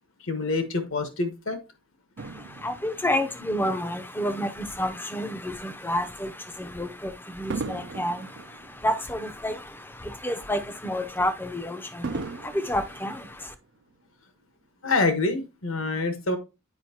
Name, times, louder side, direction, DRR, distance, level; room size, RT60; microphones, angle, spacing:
voice 1, 0.2-1.6 14.8-16.4, left 3 dB, 70° left, 1.3 m, -26 dB
voice 2, 2.2-13.5, left 1 dB, 10° left, 0.5 m, -30 dB
Fireworks, 2.2-4.8 5.4-5.6 7.5-10.0 10.4-10.5 12.0-13.9 14.6-14.7, right 4 dB, 55° right, 0.4 m, -39 dB
8.7 x 5.1 x 2.8 m
head